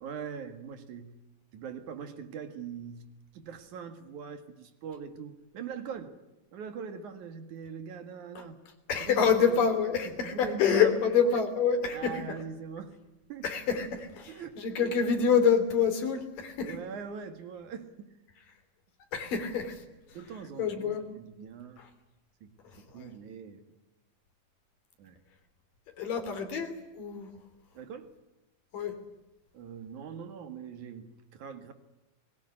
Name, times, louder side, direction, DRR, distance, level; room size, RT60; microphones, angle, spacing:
voice 1, 0.0-1.2 1.5-3.1 3.3-6.1 6.5-8.6 9.0-9.7 10.0-11.4 11.9-12.9 13.3-13.5 14.3-14.6 16.6-18.1 20.1-21.8 22.4-23.6 25.0-25.2 27.7-28.1 29.5-31.7, right 6 dB, 65° right, 9 dB, 3.1 m, -42 dB
voice 2, 8.9-12.2 13.4-16.8 19.1-19.8 20.6-21.0 22.9-23.1 26.0-27.3 28.7-29.0, left 6 dB, 80° left, 7 dB, 4.8 m, -27 dB
22.0 x 21.0 x 9.9 m, 1.0 s
omnidirectional pair, 3.8 m